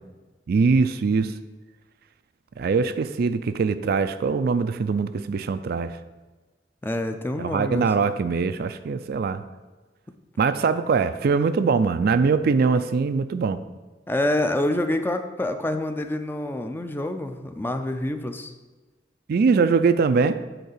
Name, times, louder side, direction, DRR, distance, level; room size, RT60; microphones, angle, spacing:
voice 1, 0.5-1.3 2.6-5.9 7.4-9.4 10.4-13.6 19.3-20.4, right 5 dB, 60° right, 11 dB, 0.4 m, -22 dB
voice 2, 6.8-7.9 14.1-18.5, left 1 dB, 10° left, 7 dB, 0.5 m, -27 dB
8.0 x 3.9 x 6.6 m, 1.2 s
head